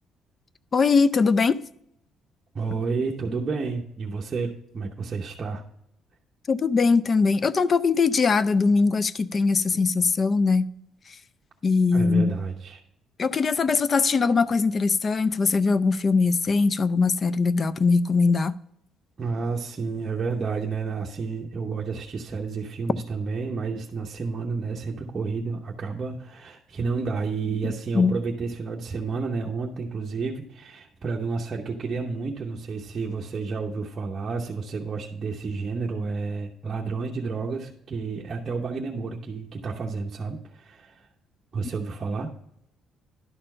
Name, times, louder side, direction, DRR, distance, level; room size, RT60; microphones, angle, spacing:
voice 1, 0.7-1.6 6.5-10.7 11.6-12.3 13.2-18.6 27.6-28.1, left 4 dB, 35° left, 0.4 m, -21 dB
voice 2, 2.5-5.6 11.9-12.8 19.2-41.1 41.5-42.3, right 4 dB, 35° right, 0.8 m, -30 dB
11.0 x 4.3 x 5.4 m
cardioid pair, 115°, 0 cm